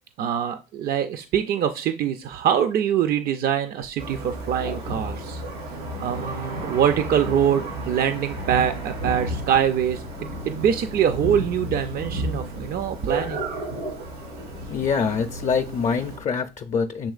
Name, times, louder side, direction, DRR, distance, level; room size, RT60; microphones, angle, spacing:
voice 1, 0.2-5.4 6.0-13.5, right 9 dB, 60° right, 0.4 m, -24 dB
Thunder, 4.0-16.2, right 1 dB, 85° right, 2.9 m, -32 dB
voice 2, 14.7-17.1, left 6 dB, 45° left, 0.5 m, -25 dB
7.2 x 3.0 x 2.4 m
supercardioid pair, 80°, 18 cm